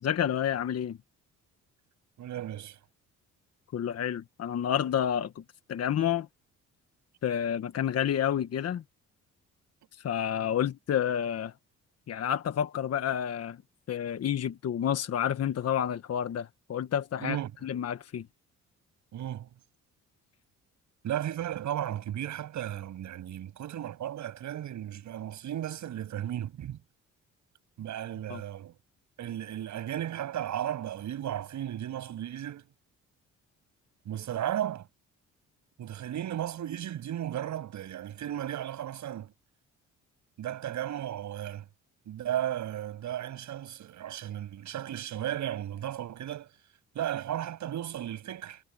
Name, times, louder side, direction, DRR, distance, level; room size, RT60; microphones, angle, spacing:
voice 1, 0.0-1.0 3.7-5.4 5.7-6.3 7.2-8.8 10.0-11.5 12.1-13.6 13.9-17.4 17.6-18.3 28.3-28.4, left 9 dB, 55° left, 1.3 m, -29 dB
voice 2, 2.2-2.8 17.2-17.5 19.1-19.5 21.0-26.8 27.8-28.7 29.2-32.7 34.1-34.9 35.8-39.3 40.4-41.7 42.1-46.5 47.0-48.6, right 11 dB, 70° right, 6.9 m, -35 dB
cardioid pair, 90°, 30 cm